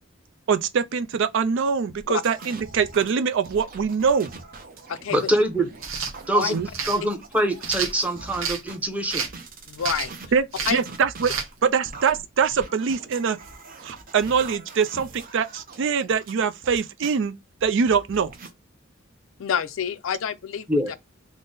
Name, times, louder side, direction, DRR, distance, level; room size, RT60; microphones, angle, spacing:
voice 1, 0.5-4.3 6.5-6.7 10.3-10.4 10.7-11.3 11.6-13.4 13.8-17.4 17.6-18.3, right 6 dB, 65° right, 0.4 m, -23 dB
sound 1, 1.9-8.8 9.2-17.2 17.6-18.5, right 3 dB, 45° right, 0.8 m, -43 dB
voice 2, 5.1-5.7 6.3-6.6 6.8-9.3 20.7-20.9, right 1 dB, 5° right, 0.8 m, -24 dB
sound 2, 5.8-6.1 6.7-7.0 7.6-8.6 9.1-9.4 9.8-10.2 10.5-10.9 11.2-11.5, right 6 dB, 80° right, 0.9 m, -29 dB
voice 3, 9.7-10.1 10.7-10.8 19.4-20.7, left 7 dB, 75° left, 0.4 m, -27 dB
3.7 x 2.0 x 3.8 m
head